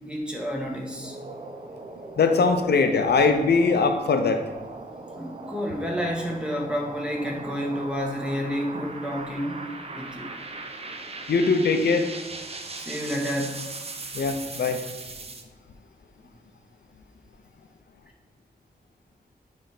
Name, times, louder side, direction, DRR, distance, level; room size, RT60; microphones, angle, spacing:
voice 1, 0.0-1.2 5.2-9.6 9.9-10.3 12.7-13.7, equal, 5° right, -1 dB, 1.3 m, -30 dB
sound 1, 0.8-15.4, right 3 dB, 40° right, 0.7 m, -39 dB
voice 2, 2.2-4.5 11.3-12.1 14.1-14.8, left 4 dB, 85° left, 7 dB, 0.6 m, -21 dB
8.9 x 3.4 x 4.8 m, 1.2 s
wide cardioid pair, 120°, 16 cm